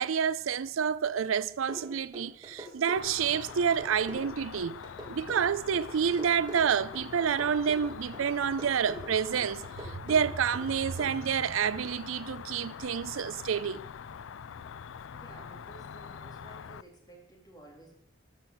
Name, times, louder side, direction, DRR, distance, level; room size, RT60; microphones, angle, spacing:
voice 1, 0.0-4.8 5.1-13.8, right 7 dB, 80° right, 0.4 m, -29 dB
sound 1, 1.7-11.1, equal, 20° right, 2.2 m, -44 dB
Cricket, 3.0-16.8, left 7 dB, 70° left, 0.4 m, -44 dB
voice 2, 15.1-18.0, right 2 dB, 20° left, 3.5 m, -53 dB
13.0 x 6.2 x 8.4 m
head